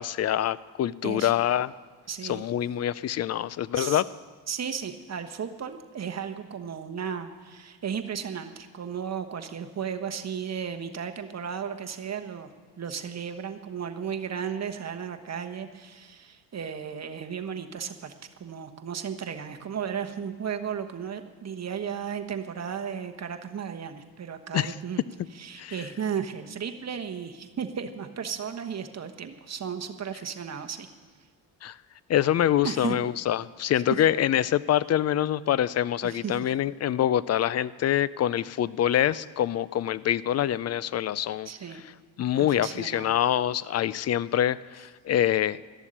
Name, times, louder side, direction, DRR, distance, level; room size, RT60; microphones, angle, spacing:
voice 1, 0.0-1.7 2.2-4.1 24.5-24.7 25.6-25.8 31.6-31.8 32.1-41.5 42.2-45.6, left 11 dB, 40° left, 19 dB, 0.4 m, -25 dB
voice 2, 2.1-2.4 3.7-4.0 4.5-12.5 12.8-18.1 18.4-25.0 25.3-30.9 32.6-33.0 36.0-36.4 41.4-41.8 42.4-43.2, right 7 dB, 35° right, 6 dB, 1.2 m, -34 dB
13.5 x 7.1 x 9.9 m, 1.4 s
cardioid pair, 90°, 44 cm